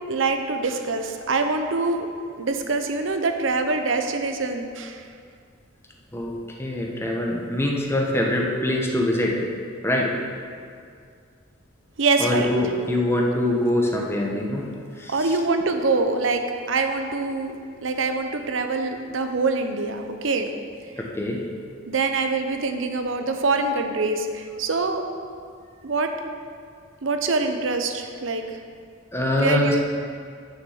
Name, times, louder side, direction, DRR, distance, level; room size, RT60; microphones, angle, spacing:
voice 1, 0.1-2.1 2.4-5.0 12.0-12.5 15.1-16.4 16.7-20.5 21.9-25.0 25.8-26.1 27.0-28.4 29.4-29.8, right 3 dB, 70° right, 6 dB, 0.7 m, -24 dB
voice 2, 6.1-9.4 9.8-10.1 12.2-14.7 15.0-15.4 21.0-21.4 29.1-29.8, left 1 dB, 10° left, -1 dB, 1.0 m, -24 dB
6.5 x 6.0 x 7.1 m, 2.2 s
head